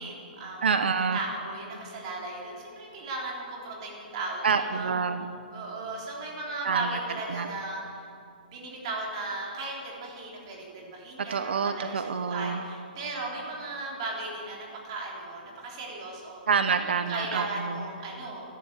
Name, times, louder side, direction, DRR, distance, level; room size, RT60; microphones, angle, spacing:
voice 1, 0.0-0.6 1.1-4.9 5.5-8.1 8.5-16.4 16.8-18.4, right 3 dB, 35° right, -2 dB, 3.5 m, -36 dB
voice 2, 0.6-1.2 4.4-5.3 6.6-7.0 7.3-7.5 11.3-12.6 16.5-17.8, right 5 dB, 90° right, 9 dB, 1.0 m, -27 dB
13.0 x 11.5 x 8.2 m, 2.4 s
hypercardioid pair, 170°, 6 cm